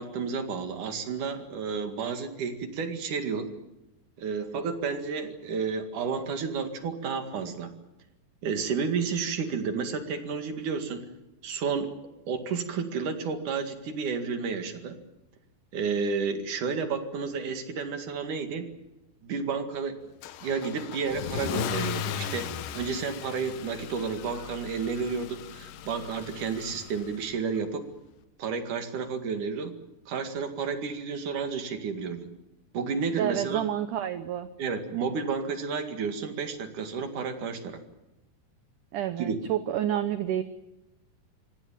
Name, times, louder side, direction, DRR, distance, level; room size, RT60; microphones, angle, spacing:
voice 1, 0.0-3.5 4.2-7.7 8.4-11.1 11.4-11.9 12.3-15.0 15.7-18.7 19.2-20.0 20.4-27.9 28.4-29.7 30.1-32.3 32.7-33.7 34.6-37.8 39.2-39.4, right 5 dB, 55° right, 7 dB, 3.2 m, -31 dB
Car / Engine starting / Accelerating revving vroom, 20.2-27.3, left 10 dB, 70° left, 2.4 m, -37 dB
voice 2, 33.2-34.5 38.9-40.4, right 10 dB, 75° right, 11 dB, 1.9 m, -29 dB
25.5 x 17.5 x 9.1 m, 0.95 s
omnidirectional pair, 4.7 m